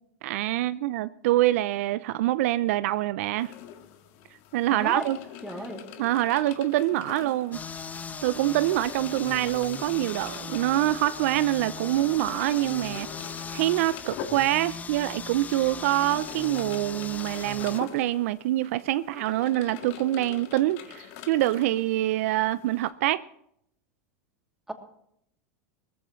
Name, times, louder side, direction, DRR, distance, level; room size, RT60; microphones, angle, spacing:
voice 1, 0.2-3.5 4.5-5.2 6.0-7.6 8.2-13.1 13.5-23.2, right 15 dB, 65° right, 0.5 m, -25 dB
sound 1, 3.4-22.9, left 9 dB, 60° left, 1.8 m, -44 dB
voice 2, 4.7-5.1 5.4-5.8 24.7-24.8, right 1 dB, 5° right, 2.8 m, -34 dB
sound 2, 7.5-17.8, left 5 dB, 20° left, 0.8 m, -38 dB
20.0 x 15.0 x 3.1 m
hypercardioid pair, 100°, 8 cm